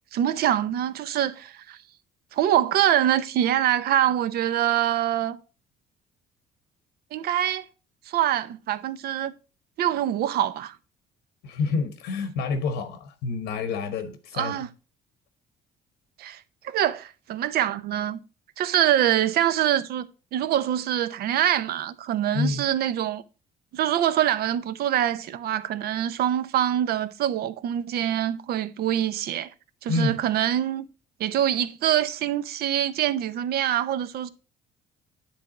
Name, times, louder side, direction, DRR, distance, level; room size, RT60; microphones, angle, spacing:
voice 1, 0.1-1.8 2.3-5.4 7.1-7.7 8.1-9.3 9.8-10.8 14.3-14.7 16.2-18.2 18.6-23.2 23.7-29.5 29.8-30.8 31.2-34.3, right 11 dB, 65° right, 0.6 m, -24 dB
voice 2, 11.4-14.5 22.3-22.7 29.9-30.2, left 4 dB, 85° left, 1.0 m, -28 dB
10.0 x 3.4 x 4.9 m
cardioid pair, 110°, 17 cm